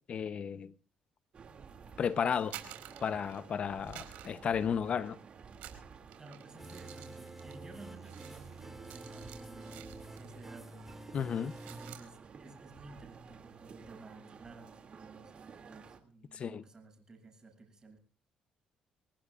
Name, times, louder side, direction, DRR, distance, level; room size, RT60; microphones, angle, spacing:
voice 1, 0.1-0.7 2.0-2.6 3.0-5.2 11.1-11.5 16.3-16.6, left 7 dB, 50° left, 0.9 m, -33 dB
sound 1, 1.3-16.0, right 6 dB, 45° right, 2.6 m, -53 dB
sound 2, 2.3-3.5 3.9-5.1 5.5-10.4 10.7-11.0 11.3-12.1, right 12 dB, 85° right, 4.6 m, -51 dB
voice 2, 6.2-10.9 11.6-18.0, right 3 dB, 25° right, 7.7 m, -54 dB
sound 3, 6.6-11.9, right 2 dB, 10° right, 2.8 m, -49 dB
27.5 x 19.0 x 2.5 m
cardioid pair, 90°, 3 cm